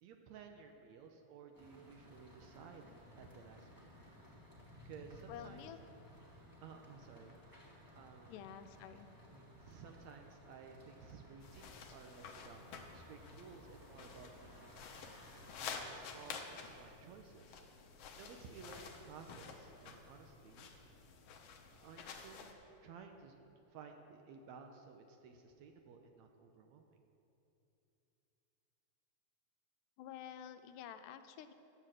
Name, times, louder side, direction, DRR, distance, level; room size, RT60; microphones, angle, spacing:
voice 1, 0.0-3.9 4.9-5.6 6.6-7.4 8.0-8.4 9.3-12.6 12.9-14.8 15.6-17.6 18.1-20.7 21.8-23.4 23.7-26.8, right 5 dB, 75° right, 4 dB, 1.8 m, -55 dB
sound 1, 1.5-16.7, left 1 dB, 25° right, 0.4 m, -59 dB
voice 2, 5.3-5.8 8.3-9.1 30.0-31.5, left 10 dB, 85° left, 9 dB, 2.1 m, -50 dB
sound 2, 11.4-22.5, left 5 dB, 70° left, 1.6 m, -51 dB
11.0 x 7.8 x 7.5 m, 2.8 s
omnidirectional pair, 3.6 m